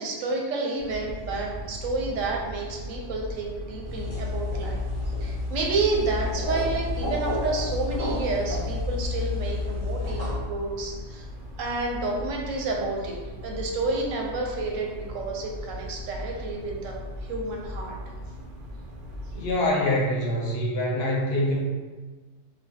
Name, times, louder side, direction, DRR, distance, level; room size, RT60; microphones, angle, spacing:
voice 1, 0.0-4.8 5.2-11.3 11.6-17.0 17.3-18.0, right 3 dB, 80° right, 0 dB, 1.0 m, -30 dB
sound 1, 0.8-19.7, equal, 55° right, 0.6 m, -39 dB
sound 2, 3.8-10.4, left 2 dB, 15° right, 1.1 m, -30 dB
voice 2, 19.3-21.6, left 1 dB, 60° left, -2 dB, 0.8 m, -25 dB
4.3 x 2.3 x 2.7 m, 1.3 s
omnidirectional pair, 1.3 m